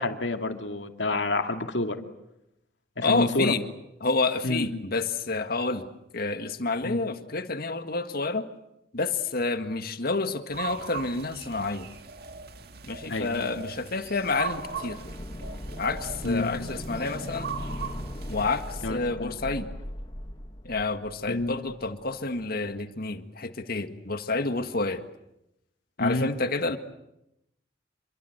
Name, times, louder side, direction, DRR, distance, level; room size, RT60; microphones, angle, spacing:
voice 1, 0.0-2.0 3.0-3.5 4.4-4.8 6.8-7.0 13.1-13.5 16.2-16.6 18.8-19.4 21.3-21.6 26.0-26.3, left 2 dB, 85° left, 6 dB, 2.3 m, -28 dB
voice 2, 3.0-3.6 4.0-8.5 8.9-11.9 12.9-15.0 15.8-17.5 18.3-19.7 20.6-25.0 26.0-26.8, left 3 dB, 55° left, 9 dB, 1.8 m, -29 dB
sound 1, 10.5-18.7, right 6 dB, 60° right, 1.9 m, -39 dB
sound 2, 14.4-22.1 22.4-22.5, left 1 dB, 25° left, 1.4 m, -39 dB
28.0 x 23.0 x 8.0 m, 0.85 s
head